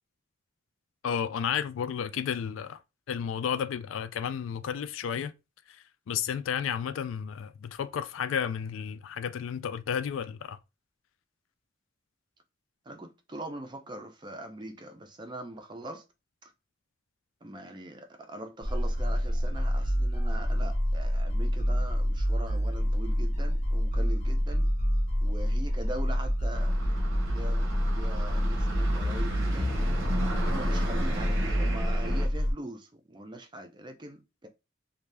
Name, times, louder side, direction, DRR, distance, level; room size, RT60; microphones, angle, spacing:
voice 1, 1.0-2.8 3.1-5.3 6.1-10.6, left 8 dB, 75° left, 0.3 m, -32 dB
voice 2, 12.9-16.0 16.4-16.5 17.4-24.7 25.2-29.7 30.4-34.5, right 1 dB, 20° right, 0.4 m, -42 dB
sound 1, 18.6-32.5, equal, 35° left, 0.7 m, -27 dB
sound 2, 26.5-32.3, right 1 dB, 80° right, 0.9 m, -36 dB
2.6 x 2.2 x 3.2 m
head